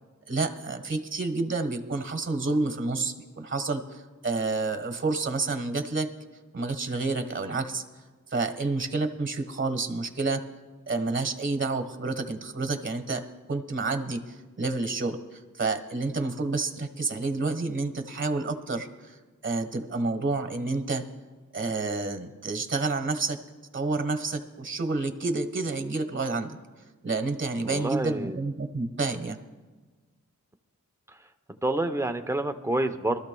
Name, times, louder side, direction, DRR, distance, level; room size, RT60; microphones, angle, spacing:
voice 1, 0.3-6.1 6.5-7.8 8.3-10.4 10.9-13.2 13.5-19.2 19.4-21.0 21.5-23.4 23.7-26.6 27.0-29.4, right 3 dB, 35° right, 7 dB, 1.4 m, -29 dB
voice 2, 27.6-28.4 31.5-33.2, right 1 dB, 10° right, 6 dB, 0.8 m, -28 dB
24.0 x 13.0 x 2.3 m, 1.3 s
wide cardioid pair, 90°, 32 cm